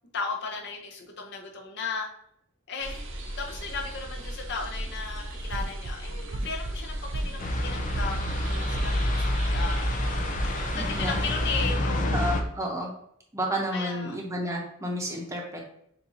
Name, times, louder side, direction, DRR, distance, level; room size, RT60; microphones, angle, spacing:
voice 1, 0.1-2.1 2.7-9.9 10.4-12.3 13.7-14.2, left 4 dB, 55° left, 0 dB, 0.9 m, -36 dB
sound 1, 2.8-11.8, right 1 dB, 65° right, 0.7 m, -37 dB
sound 2, 5.5-5.9 6.3-6.7 7.1-7.6 7.9-8.4 8.7-9.2 9.5-10.0 10.3-10.5, right 2 dB, 40° right, 0.3 m, -33 dB
sound 3, 7.4-12.4, left 1 dB, 40° left, 0.5 m, -27 dB
voice 2, 10.7-11.1 12.1-12.9 13.3-15.7, equal, 15° right, -1 dB, 0.9 m, -31 dB
7.0 x 2.6 x 2.8 m, 0.72 s
head